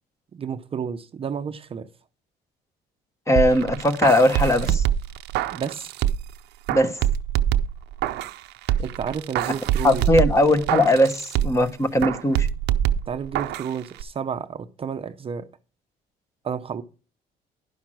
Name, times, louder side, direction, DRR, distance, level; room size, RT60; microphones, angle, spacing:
voice 1, 0.3-1.9 5.5-5.9 8.8-10.0 13.1-15.5 16.4-16.8, right 7 dB, 35° right, 0.6 m, -31 dB
voice 2, 3.3-4.8 6.7-7.0 9.8-12.5, left 1 dB, 15° left, 1.1 m, -19 dB
sound 1, 3.4-6.3 6.7-8.4 8.7-11.7 12.0-13.7 14.0-14.1, right 11 dB, 80° right, 0.6 m, -25 dB
11.0 x 5.8 x 6.2 m
cardioid pair, 110°, 17 cm